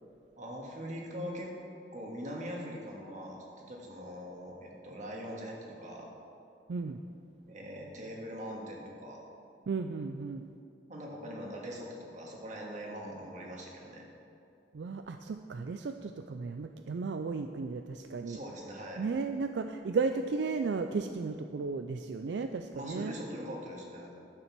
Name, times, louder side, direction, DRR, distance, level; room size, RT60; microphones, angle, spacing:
voice 1, 0.4-1.5 1.9-6.1 7.5-9.2 10.9-14.0 18.2-19.0 22.7-24.1, equal, 45° right, -1 dB, 1.8 m, -42 dB
voice 2, 6.7-7.0 9.7-10.5 14.7-18.4 19.0-23.1, right 4 dB, 75° right, 7 dB, 0.4 m, -34 dB
12.0 x 7.1 x 6.0 m, 2.6 s
head